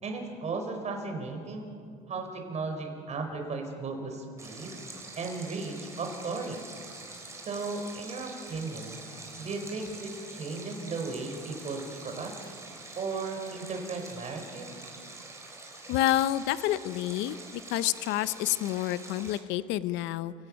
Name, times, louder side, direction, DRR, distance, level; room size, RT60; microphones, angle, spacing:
voice 1, 0.0-1.7 2.1-4.8 5.2-6.6 7.3-9.0 9.4-12.4 12.9-14.7, right 3 dB, 35° right, 3 dB, 4.9 m, -36 dB
Stream, 4.4-19.4, right 2 dB, 15° right, 4.5 m, -46 dB
voice 2, 15.9-17.4 17.7-20.3, left 14 dB, 70° left, 15 dB, 0.8 m, -28 dB
29.0 x 17.5 x 6.4 m, 2.3 s
supercardioid pair, 110°, 20 cm